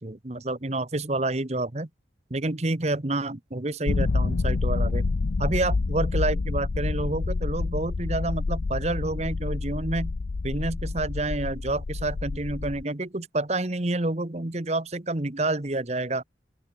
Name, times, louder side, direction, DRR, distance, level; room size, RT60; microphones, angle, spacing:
voice 1, 0.0-1.9 2.3-5.0 5.4-10.1 10.4-16.2, right 2 dB, 35° right, 1.2 m, -28 dB
sound 1, 3.9-12.8, left 3 dB, 70° left, 0.6 m, -28 dB
open air
head